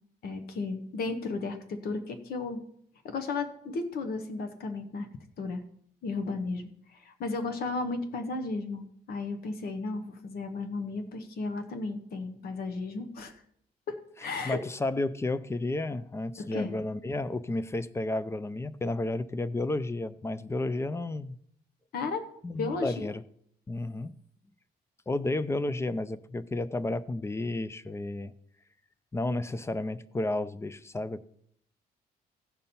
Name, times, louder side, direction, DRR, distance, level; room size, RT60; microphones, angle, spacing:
voice 1, 0.2-2.6 3.0-5.1 5.4-5.6 6.0-13.3 13.9-14.6 16.4-16.8 21.9-22.3 22.6-23.1, left 3 dB, 65° left, 1.1 m, -34 dB
voice 2, 14.4-21.4 22.4-23.2 23.7-24.1 25.1-28.3 29.1-31.2, left 2 dB, 15° left, 0.4 m, -32 dB
16.0 x 5.3 x 4.3 m
cardioid pair, 130°, 17 cm